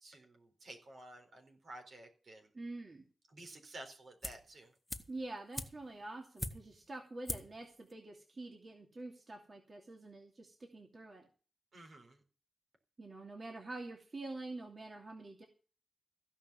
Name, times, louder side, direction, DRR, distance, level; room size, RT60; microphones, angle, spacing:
voice 1, 0.0-2.5 3.3-4.7 11.7-12.2, right 1 dB, 65° right, 4 dB, 4.1 m, -52 dB
voice 2, 2.5-3.0 5.1-11.3 13.0-15.4, right 2 dB, 40° right, 1 dB, 2.7 m, -46 dB
sound 1, 4.2-4.5 4.9-6.9 7.2-7.6 7.9-8.0, left 1 dB, 15° left, 1.6 m, -43 dB
15.5 x 5.7 x 8.5 m, 0.37 s
cardioid pair, 75°, 0 cm